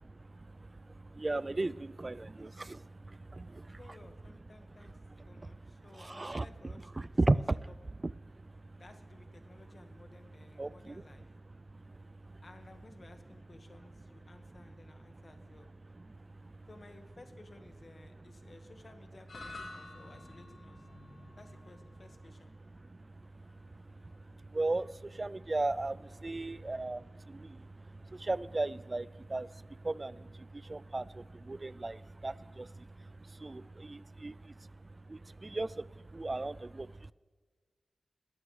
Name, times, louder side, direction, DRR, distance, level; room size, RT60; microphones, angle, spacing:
voice 1, 0.1-3.8 5.9-6.5 7.0-7.6 8.0-8.8 10.6-11.0 11.7-12.4 16.0-16.7 20.9-21.4 22.8-37.1, right 2 dB, 35° right, 19 dB, 0.3 m, -37 dB
voice 2, 3.7-5.0 5.3-7.4 8.8-11.3 12.4-15.7 16.7-20.9 21.4-22.6 26.3-26.6, left 2 dB, 50° left, 6 dB, 1.5 m, -57 dB
sound 1, 19.3-27.7, left 2 dB, 80° left, 2.0 m, -53 dB
20.5 x 14.5 x 3.2 m, 1.5 s
wide cardioid pair, 85°, 0 cm